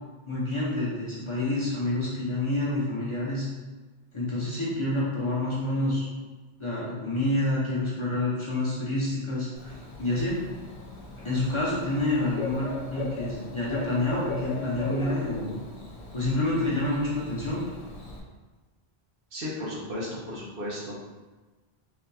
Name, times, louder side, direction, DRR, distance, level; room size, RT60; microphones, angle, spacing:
voice 1, 0.3-3.5 4.1-6.0 6.6-10.4 11.2-15.6 16.1-17.6, left 1 dB, 35° left, -8 dB, 0.7 m, -28 dB
Bird / Cricket, 9.6-18.2, left 3 dB, 85° left, 1.0 m, -39 dB
voice 2, 19.3-21.0, left 1 dB, 60° right, -5 dB, 0.9 m, -34 dB
3.9 x 2.7 x 2.3 m, 1.3 s
omnidirectional pair, 1.1 m